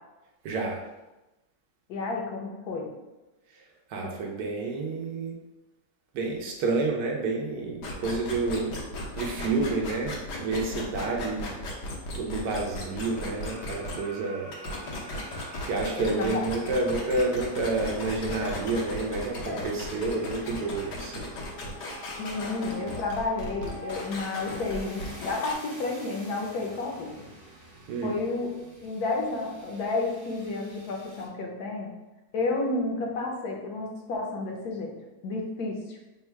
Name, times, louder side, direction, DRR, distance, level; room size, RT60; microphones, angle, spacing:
voice 1, 0.4-0.8 3.9-5.4 6.1-8.8 9.2-11.5 12.1-14.5 15.6-21.3 27.9-28.1, right 3 dB, 70° right, 0 dB, 1.1 m, -29 dB
voice 2, 1.9-2.9 4.0-4.1 12.7-12.9 16.0-16.4 19.4-19.7 22.2-27.2 28.0-28.5 28.8-31.9 32.3-34.9 35.2-36.0, left 3 dB, 70° left, 0 dB, 1.1 m, -31 dB
sound 1, 7.8-14.0 14.5-25.5, left 1 dB, 90° left, 1.4 m, -36 dB
sound 2, 12.0-31.3, right 2 dB, 45° right, 0.8 m, -48 dB
3.5 x 2.3 x 4.3 m, 1.0 s
omnidirectional pair, 1.8 m